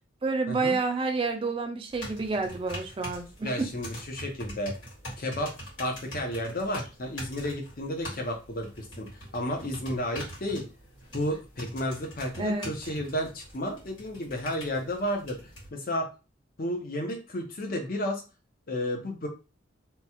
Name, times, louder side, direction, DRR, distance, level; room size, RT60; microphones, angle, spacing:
voice 1, 0.2-3.7 12.4-12.7, right 3 dB, 30° right, 4 dB, 0.3 m, -29 dB
sound 1, 1.9-15.7, equal, 80° left, 1.7 m, -43 dB
voice 2, 3.4-4.8 5.2-5.5 5.8-10.6 11.1-15.4 15.7-16.1 16.6-18.2 18.7-19.3, left 1 dB, 50° left, 2 dB, 0.7 m, -32 dB
3.0 x 2.3 x 2.8 m, 0.31 s
head